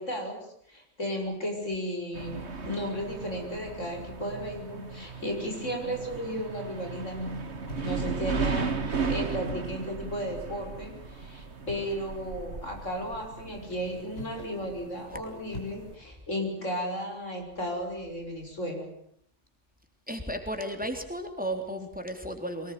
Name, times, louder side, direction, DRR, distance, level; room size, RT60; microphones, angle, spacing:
voice 1, 0.0-7.3 7.8-18.9, equal, 85° left, 3 dB, 6.8 m, -34 dB
sound 1, 2.1-16.0, right 4 dB, 65° right, 2.1 m, -36 dB
sound 2, 7.7-8.5 9.3-10.0 11.7-12.1 14.1-14.8 15.5-16.2, left 1 dB, 60° left, 6.1 m, -44 dB
voice 2, 20.1-22.7, right 1 dB, 5° right, 5 dB, 3.5 m, -34 dB
24.0 x 20.0 x 9.3 m, 0.67 s
omnidirectional pair, 1.2 m